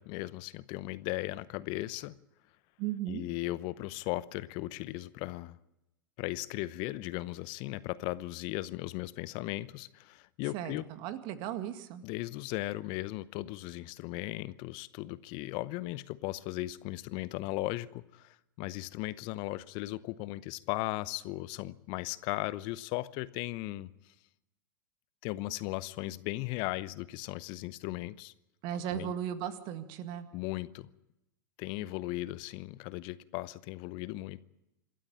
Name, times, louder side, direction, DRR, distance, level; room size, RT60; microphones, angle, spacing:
voice 1, 0.0-2.1 3.1-5.6 6.2-10.9 12.0-23.9 25.2-28.3 28.7-29.1 30.3-30.9 31.6-34.4, left 18 dB, 45° left, 0.8 m, -37 dB
voice 2, 2.8-3.2 10.5-12.0 28.6-30.3, right 10 dB, 45° right, 2.0 m, -36 dB
27.0 x 13.0 x 8.6 m
figure-of-eight pair, 95°, 11 cm